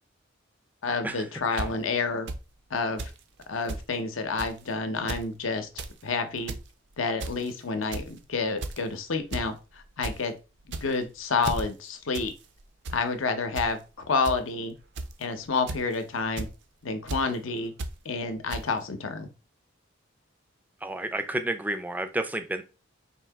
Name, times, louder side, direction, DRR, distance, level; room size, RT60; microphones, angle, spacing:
voice 1, 0.8-2.3 2.7-3.1 3.5-5.7 6.0-6.5 7.0-10.3 10.8-12.3 12.9-13.8 14.1-14.7 15.2-16.5 16.8-17.7 18.0-19.3, left 4 dB, 75° left, 7 dB, 0.7 m, -29 dB
sound 1, 1.6-1.7 2.3-2.4 3.0-3.2 3.4-3.5 3.7-3.8 4.4-4.6 5.0-5.2 5.6-5.9 6.3-6.6 7.2-7.5 7.9-8.2 8.6-8.9 9.3-9.5 9.8-10.1 10.6-11.0 11.4-11.6 12.1-12.3 12.6-13.0 13.6-13.7 14.2-14.4 15.0-15.2 15.7-15.9 16.4-16.5 17.1-17.2 17.8-17.9 18.5-18.6, right 2 dB, 60° right, 0.5 m, -34 dB
voice 2, 20.8-22.6, right 1 dB, 10° right, 8 dB, 0.4 m, -31 dB
4.3 x 2.8 x 3.4 m, 0.31 s
head